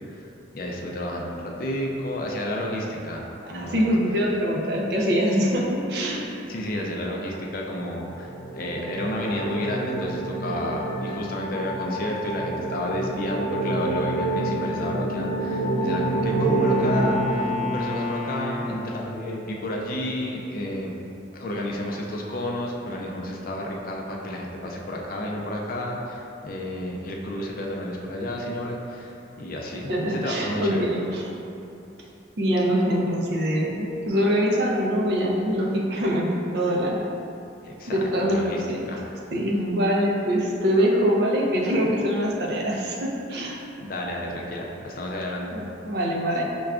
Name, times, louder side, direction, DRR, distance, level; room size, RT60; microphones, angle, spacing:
voice 1, 0.5-3.2 3.5-3.9 6.5-20.9 21.3-30.9 37.6-39.0 43.8-45.5, left 1 dB, 50° left, -1 dB, 0.4 m, -31 dB
voice 2, 3.5-6.3 29.9-31.3 32.4-37.0 37.9-38.8 39.3-43.6 45.5-46.4, equal, 60° right, -2 dB, 0.5 m, -24 dB
sound 1, 7.7-18.4, right 1 dB, 90° left, 0.7 m, -27 dB
Wind instrument woodwind instrument, 15.3-19.2, equal, 5° right, 0.6 m, -33 dB
5.6 x 2.2 x 2.4 m, 2.8 s
head